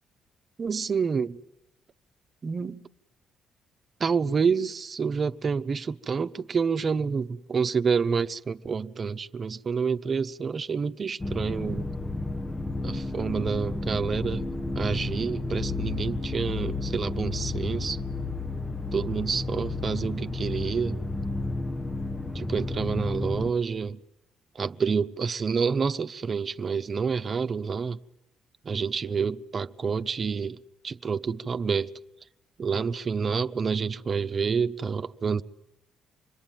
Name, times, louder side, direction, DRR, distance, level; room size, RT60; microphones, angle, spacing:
voice 1, 0.6-1.4 2.4-2.8 4.0-11.9 12.8-14.5 14.7-18.0 18.9-21.0 22.3-24.0 24.5-28.0 28.6-30.6 30.8-31.9 32.6-35.4, right 5 dB, 45° right, 1.0 m, -28 dB
sound 1, 11.2-23.5, left 3 dB, 20° left, 1.0 m, -32 dB
26.5 x 21.5 x 9.3 m
supercardioid pair, 60°, 0 cm